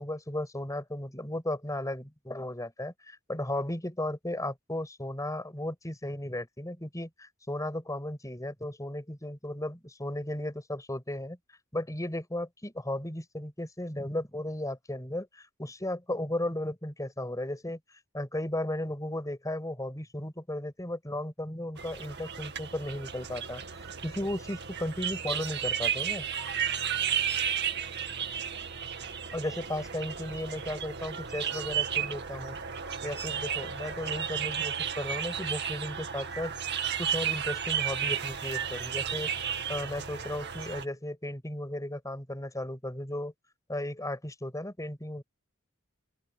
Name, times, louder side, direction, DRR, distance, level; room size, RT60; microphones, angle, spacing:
voice 1, 0.0-11.4 11.7-23.6 24.0-26.3 29.3-32.6 33.0-36.5 37.0-39.3 39.7-43.3 43.7-45.2, left 1 dB, 15° left, 6.3 m, -35 dB
sound 1, 21.8-40.9, right 8 dB, 55° right, 2.2 m, -33 dB
open air
head